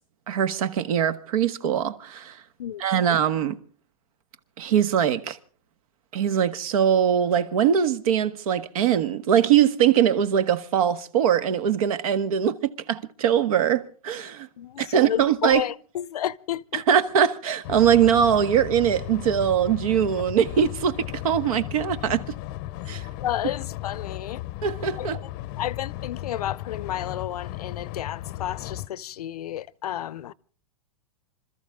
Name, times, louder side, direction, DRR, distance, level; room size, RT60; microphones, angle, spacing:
voice 1, 0.3-2.4 2.8-3.6 4.6-5.4 6.1-12.6 12.9-14.5 14.8-15.6 16.7-22.2 22.9-23.1 24.6-25.2, right 9 dB, 65° right, 1.5 m, -22 dB
voice 2, 2.6-3.0 14.6-16.8 22.9-24.4 25.0-25.1 25.6-30.3, left 11 dB, 80° left, 0.7 m, -32 dB
sound 1, 17.6-28.9, left 16 dB, 40° left, 0.7 m, -35 dB
26.5 x 13.5 x 3.7 m
hypercardioid pair, 150°, 19 cm